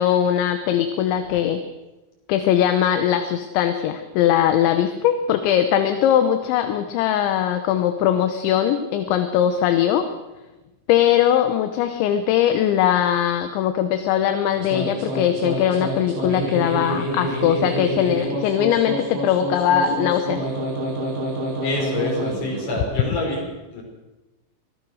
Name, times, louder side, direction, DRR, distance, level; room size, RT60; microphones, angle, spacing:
voice 1, 0.0-1.6 2.3-10.1 10.9-20.4, left 10 dB, 75° left, 8 dB, 3.2 m, -20 dB
sound 1, 14.5-22.9, right 1 dB, 70° right, 7.2 m, -27 dB
voice 2, 21.6-23.4 23.7-23.8, left 2 dB, 40° left, -1 dB, 6.5 m, -26 dB
24.5 x 17.0 x 6.4 m, 1.1 s
omnidirectional pair, 5.7 m